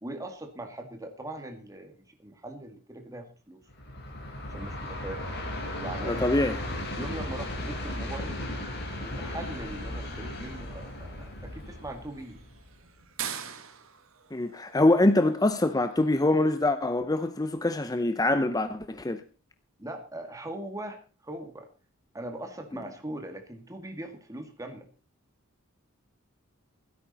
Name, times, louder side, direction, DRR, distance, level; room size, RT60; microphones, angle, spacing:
voice 1, 0.0-3.6 4.5-5.2 5.8-6.4 7.0-8.5 9.0-12.4 19.8-21.7 22.1-24.9, right 1 dB, 15° right, 1.9 m, -40 dB
Train, 3.7-12.9, left 1 dB, 50° left, 5.1 m, -36 dB
sound 1, 4.7-16.7, right 8 dB, 65° right, 1.6 m, -47 dB
voice 2, 6.0-6.6 14.3-19.2, left 2 dB, 15° left, 0.7 m, -24 dB
16.0 x 13.0 x 4.1 m
head